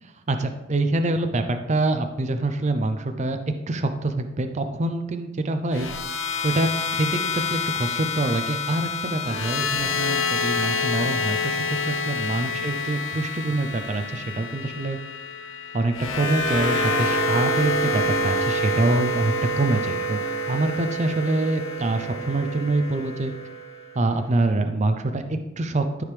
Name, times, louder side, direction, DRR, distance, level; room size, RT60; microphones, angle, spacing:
voice 1, 0.0-3.4 3.7-5.9 6.4-15.0 15.7-20.2 20.5-23.3 23.9-26.0, right 2 dB, 35° right, 7 dB, 0.5 m, -25 dB
sound 1, 5.7-23.9, left 2 dB, 75° left, 0.9 m, -27 dB
13.0 x 5.0 x 3.3 m, 1.0 s
head